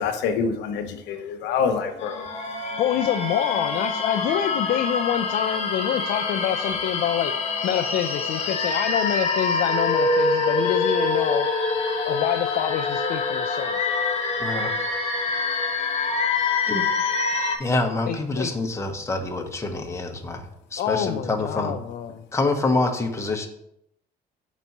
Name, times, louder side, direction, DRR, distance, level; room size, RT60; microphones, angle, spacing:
voice 1, 0.0-2.3, left 6 dB, 85° left, 6 dB, 0.8 m, -26 dB
sound 1, 2.0-17.6, left 4 dB, 40° left, 1.2 m, -25 dB
voice 2, 2.8-11.5 12.0-13.8 18.1-18.5 20.8-22.2, left 10 dB, 60° left, 6 dB, 0.5 m, -26 dB
voice 3, 14.4-14.7 16.7-16.9 17.6-21.7 22.3-23.5, left 2 dB, 15° left, 3 dB, 1.0 m, -26 dB
5.3 x 4.1 x 5.9 m, 0.75 s
cardioid pair, 110°, 17 cm